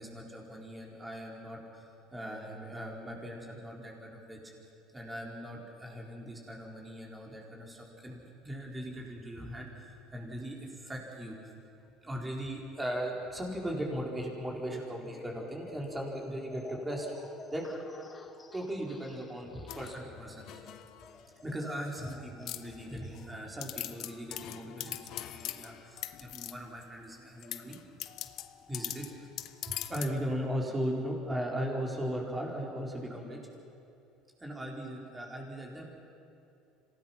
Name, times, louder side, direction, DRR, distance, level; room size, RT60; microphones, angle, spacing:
voice 1, 0.0-4.4 4.9-11.4 12.0-17.6 18.5-20.6 21.4-27.8 28.7-29.3 29.7-33.4 34.4-35.9, equal, 15° right, -1 dB, 4.7 m, -38 dB
sound 1, 14.7-23.4, left 3 dB, 20° left, 1.8 m, -51 dB
sound 2, 19.7-21.2 21.7-22.1 22.5-23.2 23.6-26.8 27.4-30.2, left 13 dB, 60° left, 0.9 m, -42 dB
26.5 x 18.0 x 6.1 m, 2.7 s
supercardioid pair, 90°, 0 cm